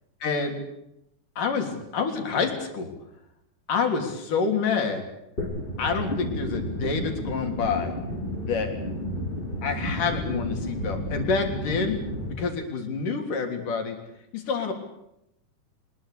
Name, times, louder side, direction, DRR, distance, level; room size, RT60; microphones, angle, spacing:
voice 1, 0.2-0.6 1.4-2.9 3.7-5.0 5.8-7.9 8.4-8.7 9.6-12.0 12.4-14.0 14.3-14.7, left 5 dB, 70° left, 4 dB, 5.0 m, -27 dB
sound 1, 5.4-12.3, left 1 dB, 15° left, 5.4 m, -31 dB
24.5 x 21.0 x 8.5 m, 0.82 s
omnidirectional pair, 3.9 m